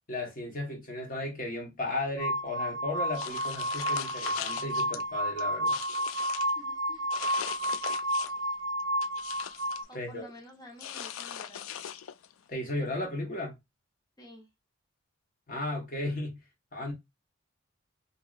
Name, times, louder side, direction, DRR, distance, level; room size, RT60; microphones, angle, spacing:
voice 1, 0.1-5.8 9.9-10.2 12.5-13.6 15.5-16.4 16.7-16.9, left 2 dB, 40° left, 1.0 m, -35 dB
sound 1, 2.2-9.8, equal, 55° right, 0.3 m, -31 dB
sound 2, 3.1-5.0 5.4-6.5 7.1-8.5 8.8-9.9 10.8-12.3, left 10 dB, 75° left, 0.3 m, -40 dB
voice 2, 6.4-7.1 9.9-11.7 14.2-14.5, left 1 dB, 20° left, 0.8 m, -50 dB
2.9 x 2.8 x 2.3 m
head